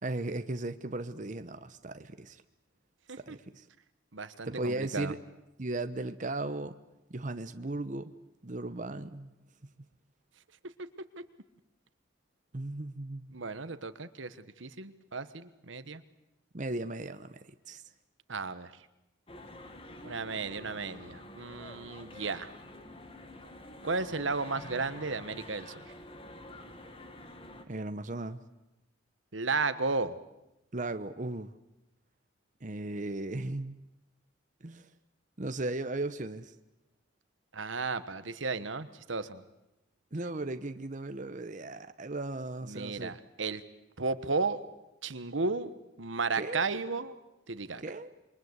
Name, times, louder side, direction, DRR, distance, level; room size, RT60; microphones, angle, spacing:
voice 1, 0.0-2.4 3.2-3.7 4.4-5.2 5.6-6.8 7.1-8.1 8.4-9.3 12.5-13.4 16.5-17.8 27.7-28.4 30.7-31.5 32.6-33.7 34.6-34.9 35.4-36.5 40.1-43.2 46.4-46.6 47.8-48.1, right 2 dB, 40° right, 0.9 m, -36 dB
voice 2, 4.1-5.1 10.8-10.9 11.2-11.3 13.3-16.0 18.3-18.7 20.0-22.5 23.8-25.9 29.3-30.2 37.5-39.4 42.6-43.6 44.0-44.6 45.0-47.1 47.5-47.8, right 4 dB, 85° right, 1.3 m, -34 dB
sound 1, 19.3-27.6, left 1 dB, 30° left, 2.0 m, -48 dB
27.5 x 23.5 x 8.1 m
head